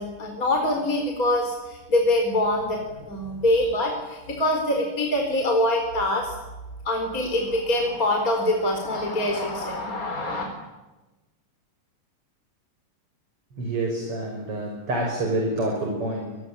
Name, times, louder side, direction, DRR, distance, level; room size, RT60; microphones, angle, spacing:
voice 1, 0.0-6.4 6.8-10.4, left 1 dB, 25° left, 2 dB, 4.7 m, -24 dB
voice 2, 13.6-16.4, right 1 dB, 40° right, 1 dB, 6.7 m, -27 dB
27.5 x 22.0 x 9.0 m, 1.1 s
omnidirectional pair, 3.8 m